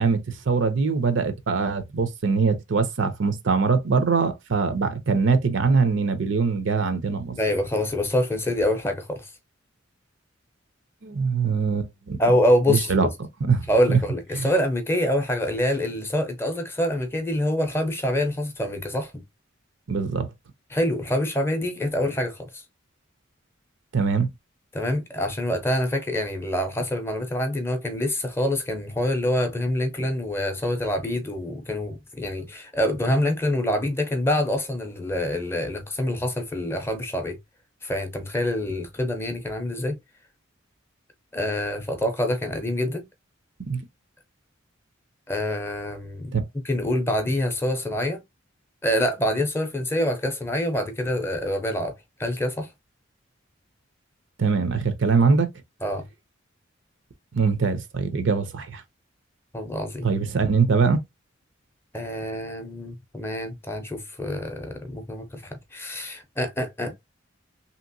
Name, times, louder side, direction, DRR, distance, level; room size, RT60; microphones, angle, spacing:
voice 1, 0.0-7.4 11.0-12.2 12.7-13.1 13.4-14.0 14.3-14.5 19.9-20.3 23.9-24.3 43.7-43.8 46.3-46.4 54.4-55.5 57.3-58.8 60.0-61.0, right 5 dB, 65° right, 0.6 m, -22 dB
voice 2, 7.3-9.3 12.2-13.1 13.7-19.2 20.7-22.6 24.7-37.4 37.8-40.0 41.3-43.0 45.3-46.3 46.6-48.2 48.8-51.9 52.2-52.7 55.8-56.0 59.5-60.1 61.9-67.0, left 1 dB, 10° left, 0.6 m, -26 dB
2.9 x 2.9 x 2.6 m
head